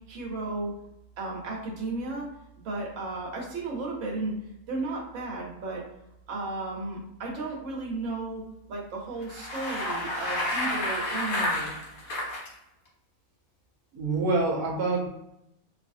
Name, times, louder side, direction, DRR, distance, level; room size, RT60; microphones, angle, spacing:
voice 1, 0.1-0.7 1.2-2.3 2.6-4.3 4.7-5.8 6.3-8.4 8.7-11.7, right 3 dB, 60° right, -2 dB, 1.2 m, -34 dB
Bicycle, 9.2-12.5, left 1 dB, 70° left, 1.6 m, -30 dB
voice 2, 13.9-15.1, right 3 dB, 90° right, -1 dB, 1.2 m, -26 dB
3.3 x 2.6 x 2.6 m, 0.83 s
omnidirectional pair, 1.5 m